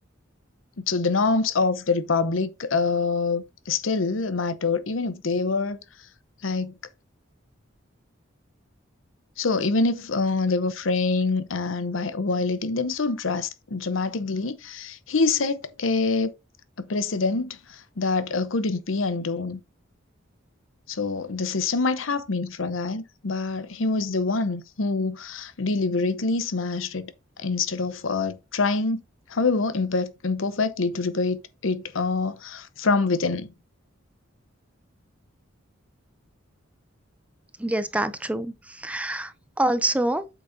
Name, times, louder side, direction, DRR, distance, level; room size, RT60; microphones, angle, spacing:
voice 1, 0.8-5.8 6.4-6.7 9.4-16.3 16.8-17.6 18.0-19.6 20.9-27.1 27.4-29.0 29.3-33.5, left 3 dB, 75° left, 0.8 m, -25 dB
voice 2, 37.6-40.3, right 1 dB, 5° right, 0.4 m, -26 dB
7.9 x 6.1 x 2.7 m
head